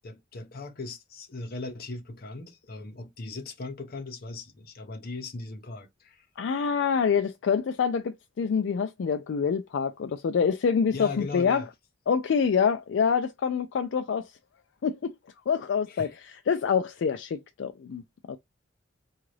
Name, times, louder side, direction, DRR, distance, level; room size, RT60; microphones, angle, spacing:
voice 1, 0.0-6.3 10.9-11.7 15.9-16.2, left 3 dB, 50° left, 0.7 m, -38 dB
voice 2, 6.4-11.6 12.1-14.3 14.8-15.2 15.5-18.0 18.3-18.4, left 6 dB, 65° left, 0.3 m, -26 dB
3.8 x 2.4 x 3.2 m
head